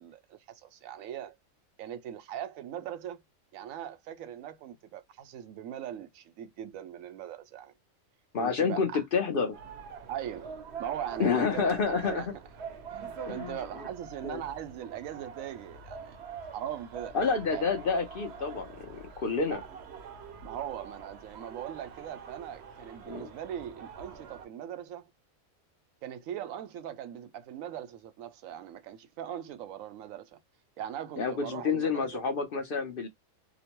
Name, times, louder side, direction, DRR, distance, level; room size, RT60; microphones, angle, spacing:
voice 1, 0.0-1.4 1.8-3.2 3.5-7.7 8.4-9.0 10.1-10.5 10.8-12.3 12.9-16.2 16.5-17.1 17.5-17.6 20.4-25.1 26.0-30.4 30.8-32.2, right 10 dB, 85° right, 1.0 m, -40 dB
voice 2, 8.3-9.6 11.2-12.2 13.3-13.9 14.2-14.4 17.1-19.6 23.1-23.3 31.2-33.1, left 5 dB, 55° left, 0.7 m, -29 dB
sound 1, 9.5-24.5, right 6 dB, 60° right, 0.8 m, -45 dB
2.9 x 2.0 x 2.9 m
omnidirectional pair, 1.4 m